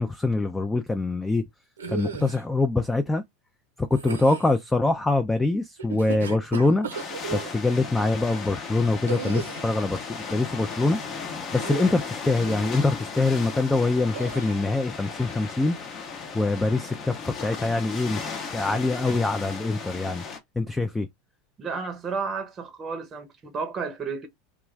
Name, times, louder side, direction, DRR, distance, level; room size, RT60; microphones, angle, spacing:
voice 1, 0.0-1.4 1.9-3.2 3.8-6.9 7.3-11.0 11.5-15.8 16.3-20.2 20.6-21.1, left 2 dB, 10° left, 0.4 m, -24 dB
sound 1, 1.8-2.4 3.9-4.6 5.8-7.5 9.1-9.8 11.5-12.0 12.4-12.7 14.1-14.6, right 6 dB, 90° right, 0.7 m, -35 dB
sound 2, 6.9-20.4, left 5 dB, 40° left, 0.7 m, -36 dB
voice 2, 21.6-24.3, right 5 dB, 30° right, 0.7 m, -32 dB
2.4 x 2.2 x 3.1 m
hypercardioid pair, 90°, 0 cm